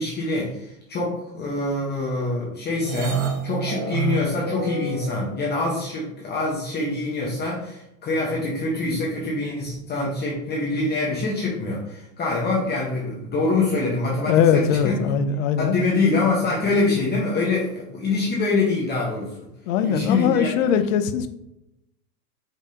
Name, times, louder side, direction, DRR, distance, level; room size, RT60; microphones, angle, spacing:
voice 1, 0.0-3.2 3.4-15.1 15.6-19.5 19.8-20.5, left 3 dB, 20° left, -4 dB, 1.0 m, -25 dB
sound 1, 2.8-5.9, right 5 dB, 40° right, 0.8 m, -29 dB
voice 2, 14.3-15.8 19.7-21.3, left 7 dB, 60° left, 9 dB, 0.7 m, -21 dB
4.9 x 3.5 x 2.8 m, 0.85 s
hypercardioid pair, 125°, 45 cm